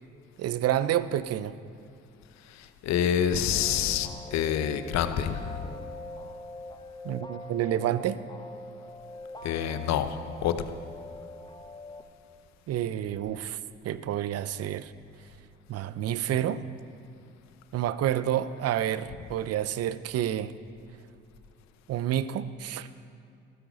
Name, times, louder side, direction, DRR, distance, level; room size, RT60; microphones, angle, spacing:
voice 1, 0.4-1.6 7.0-8.2 12.7-13.6 13.8-14.9 15.7-16.6 17.7-20.5 21.9-22.9, right 11 dB, 55° right, 15 dB, 0.7 m, -29 dB
voice 2, 2.5-5.7 9.4-10.5, left 9 dB, 65° left, 10 dB, 0.9 m, -27 dB
sound 1, 3.5-12.0, left 2 dB, 15° left, 1.1 m, -43 dB
13.5 x 13.0 x 4.1 m, 2.4 s
hypercardioid pair, 60°, 29 cm